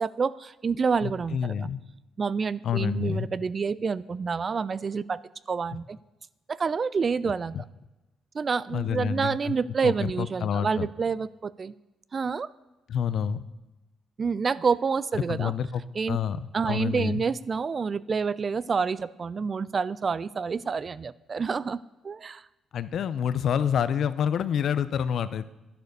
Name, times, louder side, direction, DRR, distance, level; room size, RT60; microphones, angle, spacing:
voice 1, 0.0-1.7 2.2-5.2 5.5-6.0 6.5-7.6 8.3-11.7 12.1-12.5 14.2-15.5 15.9-16.2 16.5-22.4, right 5 dB, 40° right, 18 dB, 0.4 m, -28 dB
voice 2, 1.0-1.8 2.6-3.3 7.5-7.6 8.7-9.5 9.8-10.9 12.9-13.4 15.3-16.4 16.6-17.2 22.7-25.5, left 8 dB, 65° left, 14 dB, 0.7 m, -28 dB
11.0 x 10.5 x 6.7 m, 1.0 s
cardioid pair, 90°, 0 cm